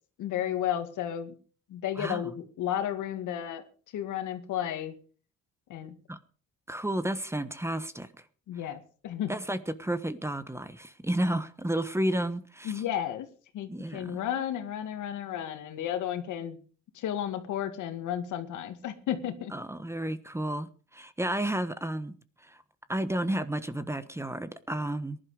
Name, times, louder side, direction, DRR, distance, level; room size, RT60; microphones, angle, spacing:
voice 1, 0.2-1.3 1.7-3.6 3.9-4.9 5.7-6.0 8.5-9.3 12.6-13.3 13.5-16.6 16.9-19.5, left 10 dB, 85° left, 9 dB, 2.0 m, -33 dB
voice 2, 2.0-2.3 6.1-6.2 6.7-8.1 9.3-12.8 13.7-14.2 19.5-22.1 22.4-22.6 22.9-25.2, right 1 dB, 10° right, 13 dB, 1.2 m, -32 dB
18.5 x 11.5 x 4.9 m, 0.41 s
cardioid pair, 90°, 30 cm